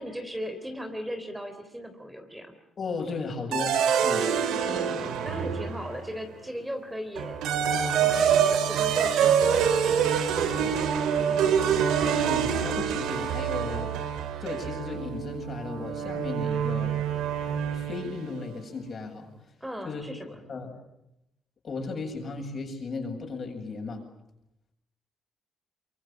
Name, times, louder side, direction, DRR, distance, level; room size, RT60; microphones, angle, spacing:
voice 1, 0.0-2.5 4.5-7.5 7.8-11.7 19.6-20.4, equal, 10° right, 6 dB, 3.5 m, -38 dB
voice 2, 2.8-4.3 12.2-14.0 14.4-16.9 17.7-19.3 19.8-20.8 21.6-24.0, left 4 dB, 45° left, 3 dB, 7.7 m, -35 dB
sound 1, 3.5-6.1 7.2-18.3, right 8 dB, 85° right, 2.9 m, -26 dB
24.5 x 23.5 x 9.1 m, 0.84 s
cardioid pair, 90°, 0 cm